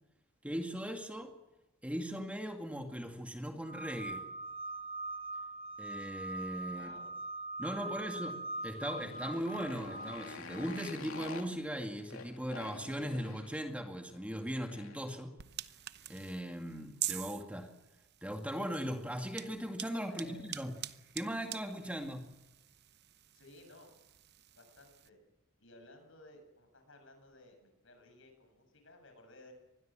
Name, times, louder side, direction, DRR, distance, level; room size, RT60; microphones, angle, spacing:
voice 1, 0.4-1.3 1.8-4.2 5.8-6.9 7.6-15.4 16.1-17.7 18.2-20.8 21.1-22.3, equal, 5° right, 4 dB, 2.2 m, -39 dB
sound 1, 3.6-11.4, right 2 dB, 30° right, 2.0 m, -43 dB
voice 2, 6.7-7.1 7.8-7.9 20.1-20.4 23.3-23.9 24.6-25.2 25.6-29.5, left 2 dB, 70° left, 5 dB, 7.6 m, -57 dB
Motorcycle, 8.5-15.2, left 3 dB, 85° left, 2.9 m, -49 dB
sound 2, 15.4-25.1, right 13 dB, 55° right, 0.9 m, -46 dB
25.5 x 21.0 x 7.7 m, 0.95 s
head